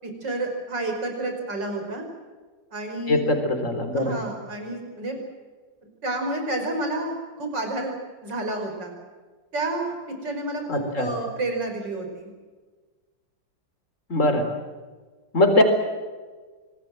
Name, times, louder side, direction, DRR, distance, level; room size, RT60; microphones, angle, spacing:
voice 1, 0.0-2.0 2.7-3.2 3.9-5.2 6.0-7.9 8.2-8.9 9.5-10.0 10.2-12.3, right 2 dB, 70° right, 4 dB, 6.0 m, -30 dB
voice 2, 3.1-4.2 10.7-11.1 14.1-14.4 15.3-15.6, left 1 dB, 40° left, 6 dB, 4.3 m, -21 dB
25.5 x 20.0 x 7.7 m, 1.4 s
omnidirectional pair, 2.0 m